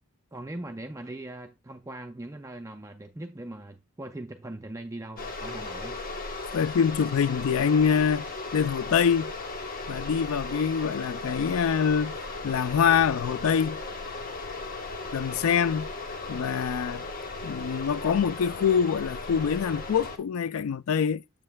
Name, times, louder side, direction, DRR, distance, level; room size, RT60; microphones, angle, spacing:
voice 1, 0.3-6.1, right 1 dB, 15° right, 0.4 m, -40 dB
sound 1, 5.2-20.2, left 3 dB, 40° left, 1.1 m, -36 dB
voice 2, 6.5-8.3 8.5-9.3 9.9-12.1 12.4-13.8 15.1-15.9 16.3-17.0 17.4-21.2, left 7 dB, 75° left, 0.4 m, -25 dB
7.6 x 7.3 x 2.3 m
head